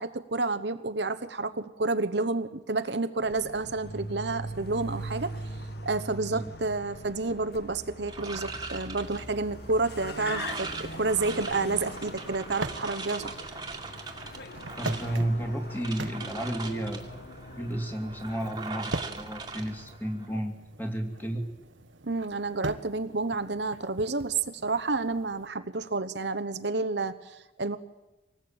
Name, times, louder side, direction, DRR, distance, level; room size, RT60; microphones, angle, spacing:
voice 1, 0.0-5.3 5.8-13.4 22.0-27.8, right 3 dB, 65° right, 10 dB, 1.1 m, -30 dB
Car, 3.2-20.0, equal, 55° left, 2.0 m, -42 dB
sound 1, 8.1-20.4, right 4 dB, 20° right, 2.1 m, -41 dB
sound 2, 8.9-25.5, right 2 dB, 85° right, 1.3 m, -44 dB
voice 2, 14.8-17.0 17.6-21.4, right 1 dB, 10° left, 3 dB, 2.7 m, -32 dB
25.5 x 19.5 x 8.9 m, 1.1 s
head